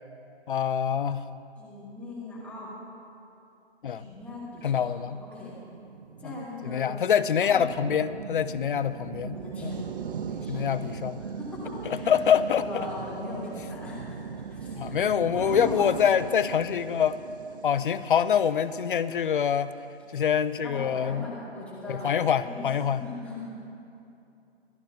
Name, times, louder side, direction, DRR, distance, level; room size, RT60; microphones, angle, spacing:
voice 1, 0.5-1.2 3.8-4.0 4.6-5.2 6.2-6.4 6.6-9.7 10.5-11.2 11.9-12.6 14.8-17.2 17.6-19.7 20.1-21.2 21.9-23.0, left 8 dB, 55° left, 14 dB, 0.5 m, -25 dB
voice 2, 1.6-2.7 3.9-5.6 6.2-7.0 7.4-7.7 9.3-9.9 10.3-10.8 11.2-12.1 12.6-15.0 15.3-15.9 20.1-20.2 20.6-22.7 23.0-23.5, left 1 dB, 5° left, -8 dB, 2.5 m, -39 dB
sound 1, 4.2-19.7, right 6 dB, 55° right, 0.5 m, -40 dB
25.0 x 10.5 x 2.7 m, 2.7 s
figure-of-eight pair, 140°, 32 cm